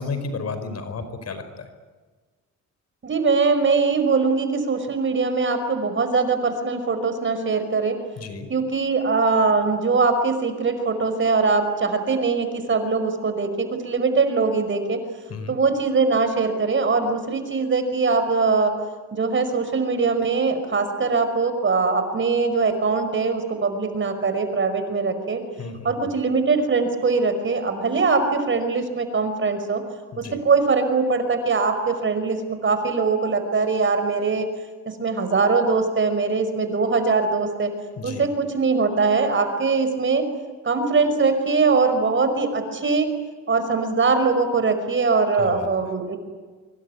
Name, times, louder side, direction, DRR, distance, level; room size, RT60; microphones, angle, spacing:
voice 1, 0.0-1.7 8.2-8.5 15.3-15.5 25.6-26.1 30.1-30.4 38.0-38.2 45.4-45.7, left 4 dB, 55° left, 10 dB, 4.9 m, -32 dB
voice 2, 3.0-8.0 8.5-15.0 15.5-18.7 19.1-25.4 25.8-29.8 30.4-34.5 34.9-37.7 38.0-40.2 40.6-43.1 43.5-46.2, right 4 dB, 40° right, 9 dB, 5.5 m, -22 dB
25.0 x 23.5 x 9.6 m, 1.4 s
cardioid pair, 90°, 30 cm